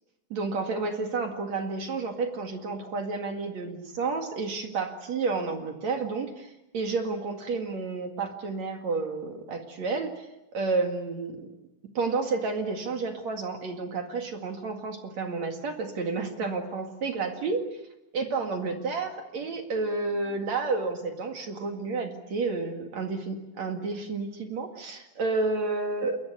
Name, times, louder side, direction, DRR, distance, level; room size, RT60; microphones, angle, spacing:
voice 1, 0.3-10.3 10.5-11.5 11.9-17.6 18.1-26.2, right 3 dB, 50° right, 4 dB, 2.8 m, -30 dB
29.5 x 21.5 x 8.1 m, 0.92 s
omnidirectional pair, 4.9 m